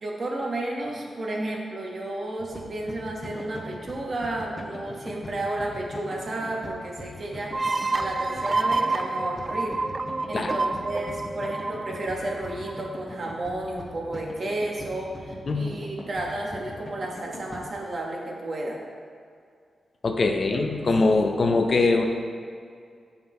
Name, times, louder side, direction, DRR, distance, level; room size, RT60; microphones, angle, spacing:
voice 1, 0.0-9.8 10.3-18.8 20.5-21.7, right 1 dB, 55° right, -1 dB, 1.3 m, -32 dB
sound 1, 2.4-17.6, left 1 dB, 30° left, 1.0 m, -41 dB
sound 2, 7.5-13.0, right 3 dB, 35° right, 0.3 m, -28 dB
voice 2, 15.5-15.8 20.0-22.0, left 3 dB, 55° left, 4 dB, 0.7 m, -22 dB
5.9 x 5.8 x 4.3 m, 2.2 s
cardioid pair, 75°, 0 cm